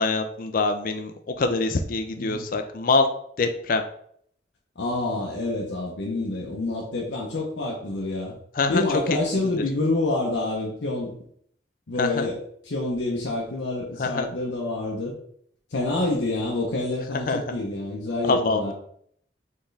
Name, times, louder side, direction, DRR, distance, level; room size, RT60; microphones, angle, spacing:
voice 1, 0.0-3.1 3.4-3.8 8.5-8.8 12.0-12.3 14.0-14.3 17.3-17.4 18.2-18.7, left 3 dB, 50° left, 7 dB, 0.4 m, -24 dB
voice 2, 4.8-8.3 8.7-11.1 11.9-12.4 12.6-15.1 15.7-18.7, left 2 dB, 85° left, -2 dB, 0.7 m, -27 dB
4.4 x 3.6 x 3.3 m, 0.65 s
head